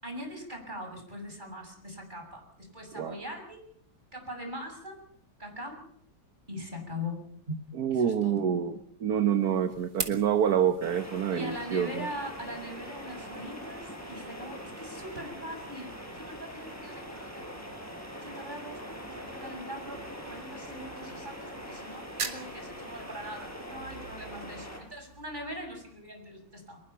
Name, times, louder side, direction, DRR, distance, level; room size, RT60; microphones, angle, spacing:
voice 1, 0.0-3.6 4.1-5.0 5.4-5.8 6.5-7.2 7.5-7.7 7.9-8.4 11.3-17.7 18.1-26.8, equal, 25° right, 3 dB, 7.2 m, -41 dB
voice 2, 7.8-12.1, right 8 dB, 60° right, 8 dB, 1.6 m, -27 dB
sound 1, 9.1-26.1, right 5 dB, 85° right, 3.0 m, -46 dB
sound 2, 10.8-24.8, equal, 10° left, 5.2 m, -42 dB
25.0 x 22.0 x 5.8 m, 0.63 s
omnidirectional pair, 2.0 m